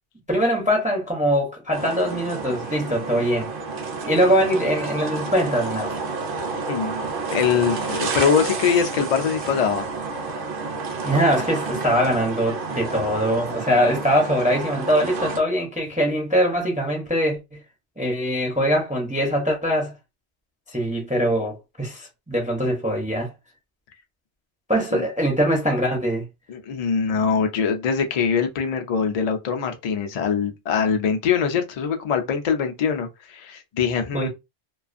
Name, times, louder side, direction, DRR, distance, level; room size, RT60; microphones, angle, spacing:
voice 1, 0.3-3.5 4.0-6.0 11.0-17.6 18.0-19.9 20.7-23.3 24.7-26.3 34.1-34.3, equal, 10° right, 0.4 m, -22 dB
sound 1, 1.7-15.4, right 4 dB, 55° right, 0.8 m, -30 dB
voice 2, 7.3-9.9 24.9-25.0 26.5-34.3, left 6 dB, 55° left, 0.4 m, -23 dB
2.4 x 2.3 x 2.4 m
omnidirectional pair, 1.2 m